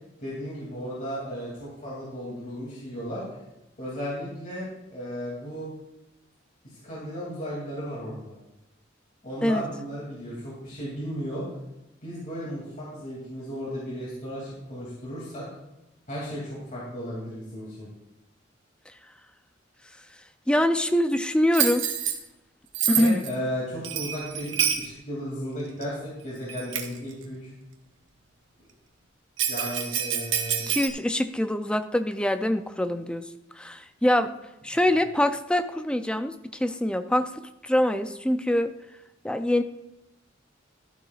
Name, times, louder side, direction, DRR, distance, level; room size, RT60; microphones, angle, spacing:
voice 1, 0.2-3.2 3.8-5.7 6.8-8.3 9.2-11.4 12.0-15.5 16.1-17.9 23.0-27.5 29.5-30.7, equal, 40° left, -6 dB, 2.6 m, -35 dB
voice 2, 20.5-21.9 22.9-23.2 30.7-33.3 33.6-34.4 34.6-37.3 37.6-38.7 39.2-39.6, left 1 dB, 5° left, 9 dB, 0.4 m, -24 dB
Bell, 21.5-22.2 22.7-23.3 23.8-24.9 25.8-25.9 26.5-27.0 29.4-30.9, right 9 dB, 75° right, 1.1 m, -27 dB
12.0 x 11.0 x 2.4 m, 0.94 s
head